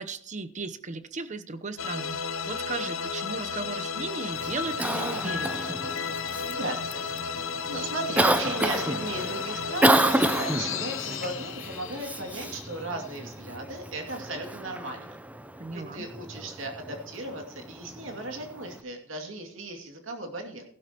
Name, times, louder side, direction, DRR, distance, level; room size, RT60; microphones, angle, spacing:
voice 1, 0.0-5.7 15.6-16.0, right 3 dB, 40° right, 11 dB, 0.8 m, -36 dB
sound 1, 1.8-13.2, left 6 dB, 85° left, 0.9 m, -33 dB
Cough, 4.3-18.8, right 1 dB, 10° right, 0.6 m, -30 dB
voice 2, 6.1-15.2 15.7-20.6, right 2 dB, 75° right, 2 dB, 2.5 m, -37 dB
15.5 x 12.0 x 3.0 m, 0.63 s
head